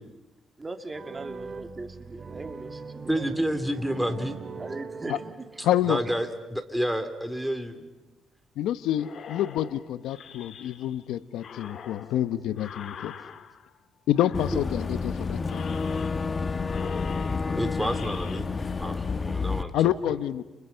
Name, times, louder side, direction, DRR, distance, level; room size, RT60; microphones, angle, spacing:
voice 1, 0.6-3.3 4.6-5.5, right 2 dB, 25° right, 6 dB, 2.5 m, -39 dB
sound 1, 0.9-5.9, right 4 dB, 40° right, 2.1 m, -41 dB
voice 2, 3.1-4.4 5.8-7.9 17.3-18.5 18.8-20.1, equal, 5° right, 8 dB, 3.1 m, -30 dB
voice 3, 5.6-6.0 8.6-13.1 14.1-15.8 19.7-20.4, left 12 dB, 85° left, 13 dB, 1.0 m, -27 dB
sound 2, 8.9-11.0 11.4-13.8 14.1-15.0 15.4-16.4 16.6-18.4, left 7 dB, 60° left, 1.7 m, -44 dB
Boat Water vehicle / Engine, 14.3-19.6, left 4 dB, 30° left, 1.1 m, -29 dB
30.0 x 30.0 x 5.7 m, 1.0 s
cardioid pair, 90°, 0 cm